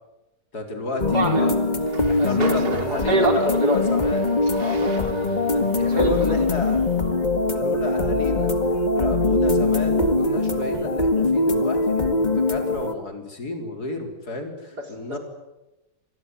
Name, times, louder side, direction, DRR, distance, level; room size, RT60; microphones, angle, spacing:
voice 1, 0.5-1.5 2.1-4.3 4.6-5.2 5.5-6.8 7.5-8.5 8.9-15.2, left 2 dB, 60° left, 4 dB, 4.6 m, -31 dB
sound 1, 1.0-12.9, left 2 dB, 25° left, 2.0 m, -22 dB
voice 2, 1.1-2.6 2.9-3.8 5.8-6.4 15.1-15.2, right 1 dB, 65° right, 4 dB, 4.6 m, -25 dB
Train, 1.8-7.1, right 5 dB, 35° right, 1.6 m, -37 dB
25.5 x 20.5 x 9.5 m, 0.98 s
omnidirectional pair, 1.8 m